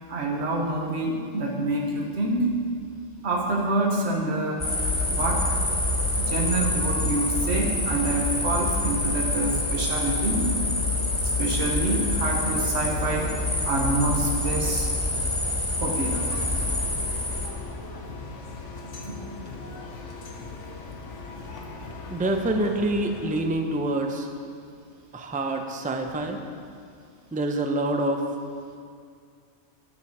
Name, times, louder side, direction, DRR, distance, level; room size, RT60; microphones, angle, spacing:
voice 1, 0.1-2.5 3.2-4.7 5.1-5.4 6.2-10.5 11.4-13.3 13.6-14.9 15.8-16.2 18.8-19.2, right 2 dB, 60° right, 0 dB, 1.4 m, -27 dB
sound 1, 4.6-17.5, left 2 dB, 25° left, 1.4 m, -26 dB
sound 2, 16.0-23.4, left 3 dB, 75° left, 1.4 m, -39 dB
voice 2, 22.1-24.3 25.1-26.4 27.3-28.2, right 1 dB, 10° right, 4 dB, 0.5 m, -26 dB
11.0 x 9.7 x 4.8 m, 2.3 s
omnidirectional pair, 1.3 m